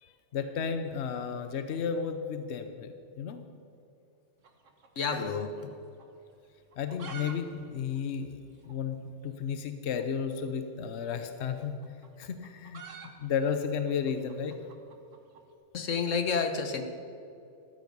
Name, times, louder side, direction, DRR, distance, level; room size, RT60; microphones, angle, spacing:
voice 1, 0.0-2.9 3.2-3.4 6.8-8.4 8.6-11.7 12.2-12.8 13.2-14.5, left 6 dB, 65° left, 8 dB, 1.1 m, -33 dB
sound 1, 4.4-5.7 6.0-6.1 6.6-7.4 7.6-7.7 7.9-8.0 8.6-8.7 9.9-10.1 11.2-15.5, right 5 dB, 90° right, 1.7 m, -48 dB
voice 2, 5.0-5.5 15.7-16.8, left 5 dB, 85° left, 7 dB, 1.5 m, -29 dB
14.5 x 12.5 x 5.4 m, 2.6 s
omnidirectional pair, 1.3 m